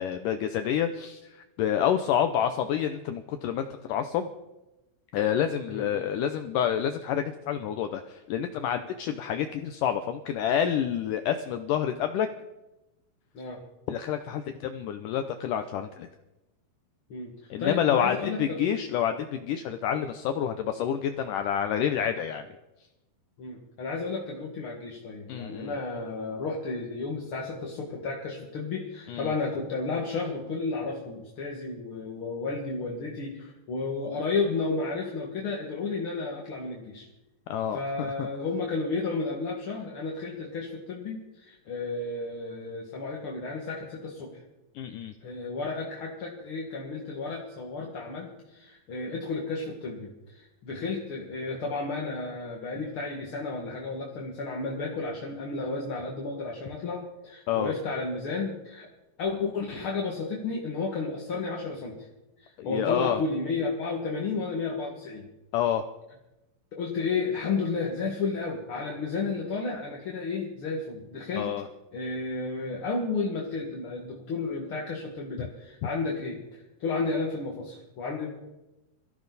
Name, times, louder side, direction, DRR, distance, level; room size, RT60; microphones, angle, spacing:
voice 1, 0.0-4.3 5.1-12.3 13.9-16.1 17.5-22.4 25.3-25.8 29.1-29.3 37.5-38.3 44.8-45.1 57.5-57.7 62.6-63.2 65.5-65.8 71.4-71.7, left 9 dB, 75° left, 8 dB, 2.0 m, -28 dB
voice 2, 17.1-18.8 19.9-20.0 23.4-37.1 37.7-44.3 45.2-58.9 59.2-62.1 62.4-65.3 66.7-71.5 71.9-78.3, left 3 dB, 45° left, -1 dB, 2.1 m, -32 dB
22.5 x 14.5 x 4.1 m, 0.98 s
omnidirectional pair, 4.4 m